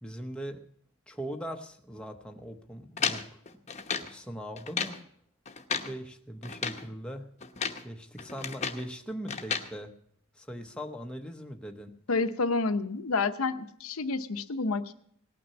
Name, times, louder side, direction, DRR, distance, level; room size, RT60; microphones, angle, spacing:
voice 1, 0.0-0.6 1.1-3.4 4.0-5.0 5.7-7.3 7.8-9.9 10.3-11.9, equal, 5° left, 3 dB, 0.8 m, -40 dB
sound 1, 3.0-4.1 4.6-5.0 5.5-5.9 6.4-6.9 7.4-7.9 8.2-8.9 9.3-9.7, left 6 dB, 30° left, 0.9 m, -33 dB
voice 2, 12.1-14.9, left 3 dB, 80° left, 10 dB, 0.8 m, -29 dB
18.0 x 6.0 x 8.3 m, 0.67 s
head